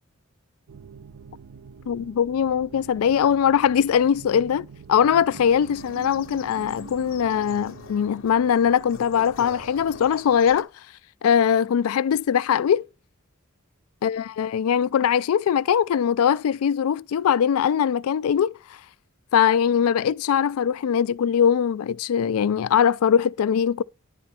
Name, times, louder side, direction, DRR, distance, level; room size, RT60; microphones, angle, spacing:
sound 1, 0.7-10.2, right 5 dB, 85° right, 0.5 m, -45 dB
voice 1, 1.9-10.7 11.2-12.8 14.0-18.6 19.3-23.8, left 8 dB, 90° left, 0.3 m, -21 dB
sound 2, 5.3-10.6, left 5 dB, 60° left, 0.8 m, -44 dB
10.5 x 4.2 x 4.3 m
head